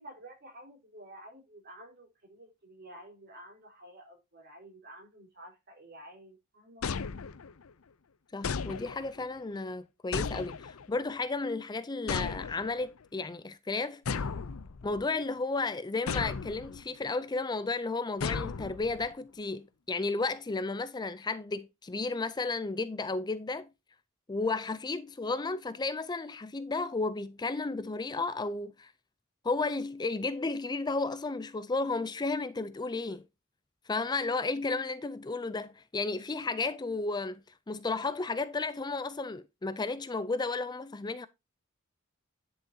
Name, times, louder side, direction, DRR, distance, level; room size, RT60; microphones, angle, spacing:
voice 1, 0.0-6.9, right 1 dB, 50° right, 4.5 m, -51 dB
sound 1, 6.8-7.7 8.4-9.3 10.1-11.0 12.1-12.9 14.1-15.1 16.1-16.8 18.2-19.1, left 5 dB, 80° left, 0.6 m, -35 dB
voice 2, 8.3-14.3 14.8-23.7 24.3-28.9 29.4-33.2 33.9-41.3, left 3 dB, 20° left, 0.5 m, -33 dB
10.5 x 6.3 x 2.8 m
head